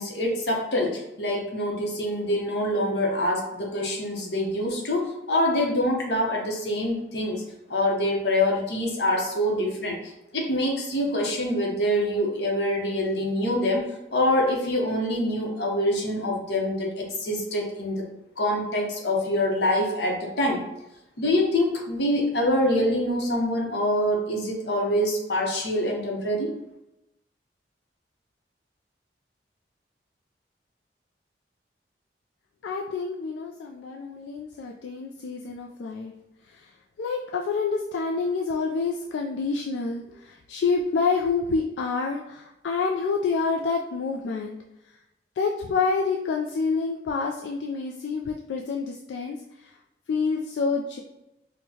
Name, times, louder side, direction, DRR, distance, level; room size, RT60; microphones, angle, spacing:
voice 1, 0.0-10.0 10.3-13.8 14.1-18.0 18.4-20.6 21.2-26.5, left 1 dB, 70° left, -1 dB, 0.8 m, -25 dB
voice 2, 32.6-36.1 36.4-44.6 45.4-49.8 50.1-51.0, left 4 dB, 90° left, 1 dB, 0.3 m, -28 dB
4.5 x 2.1 x 2.7 m, 0.92 s
head